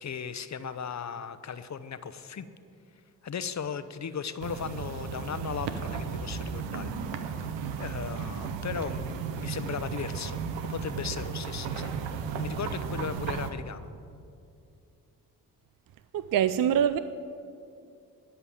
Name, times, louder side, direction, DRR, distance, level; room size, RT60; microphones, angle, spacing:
voice 1, 0.0-2.5 3.2-6.9 7.8-10.4 10.6-11.9 12.4-13.9, left 7 dB, 40° left, 13 dB, 0.8 m, -36 dB
sound 1, 4.4-13.5, right 6 dB, 80° right, 0.9 m, -34 dB
voice 2, 16.1-17.0, right 9 dB, 50° right, 12 dB, 0.5 m, -24 dB
13.0 x 5.7 x 9.1 m, 2.5 s
hypercardioid pair, 45°, 43 cm